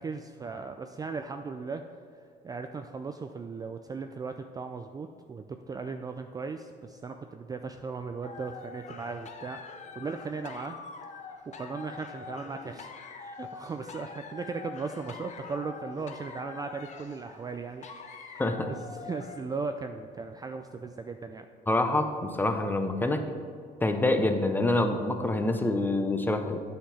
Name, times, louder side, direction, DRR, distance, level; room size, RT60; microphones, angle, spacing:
voice 1, 0.0-1.8 2.4-9.6 9.9-10.8 11.2-21.5, right 4 dB, 20° right, 6 dB, 0.3 m, -37 dB
sound 1, 8.2-19.6, left 5 dB, 45° left, 0.8 m, -45 dB
voice 2, 18.4-18.7 21.7-23.2 23.8-26.6, left 2 dB, 10° left, 6 dB, 0.7 m, -26 dB
8.6 x 5.8 x 4.2 m, 2.2 s
cardioid pair, 110°, 17 cm